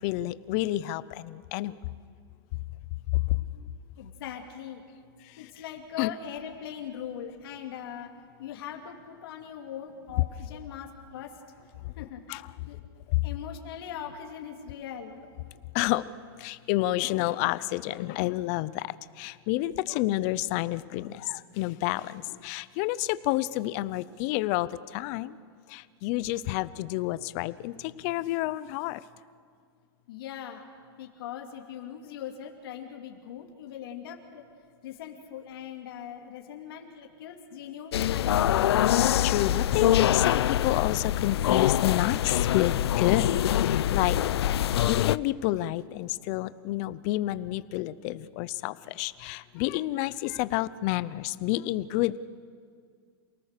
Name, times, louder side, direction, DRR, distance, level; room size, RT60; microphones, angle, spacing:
voice 1, 0.0-1.8 3.3-3.4 6.0-6.1 12.3-12.4 13.1-13.2 15.7-16.1 16.4-25.4 25.7-29.0 39.2-44.2 44.9-52.3, left 17 dB, 40° left, 17 dB, 0.7 m, -29 dB
voice 2, 4.0-4.8 5.4-8.1 8.4-11.4 12.0-12.2 12.7-12.8 13.2-15.2 30.1-30.6 31.0-34.4 34.8-38.7, left 9 dB, 65° left, 2 dB, 2.7 m, -40 dB
sound 1, 37.9-45.2, left 11 dB, 90° left, 0.5 m, -24 dB
28.5 x 18.5 x 6.7 m, 2.2 s
supercardioid pair, 150°, 13 cm